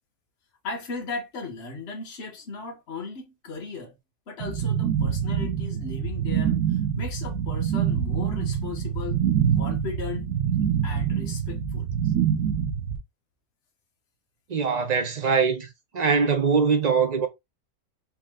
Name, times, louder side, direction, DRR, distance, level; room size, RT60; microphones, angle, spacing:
voice 1, 0.6-4.0 4.3-9.2 9.5-10.3 10.8-11.9, left 4 dB, 50° left, 1.4 m, -36 dB
sound 1, 4.4-13.0, right 8 dB, 80° right, 1.4 m, -25 dB
voice 2, 14.5-17.3, right 5 dB, 35° right, 0.7 m, -22 dB
4.3 x 3.1 x 3.6 m
omnidirectional pair, 1.6 m